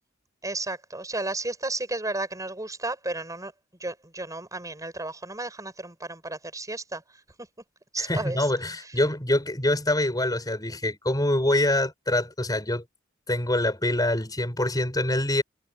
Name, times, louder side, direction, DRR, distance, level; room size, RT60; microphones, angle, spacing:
voice 1, 0.4-3.5 3.8-7.0 7.9-8.5 8.8-8.9, right 2 dB, 20° right, 5.5 m, -33 dB
voice 2, 8.0-12.8 13.3-15.4, left 1 dB, 20° left, 5.8 m, -25 dB
head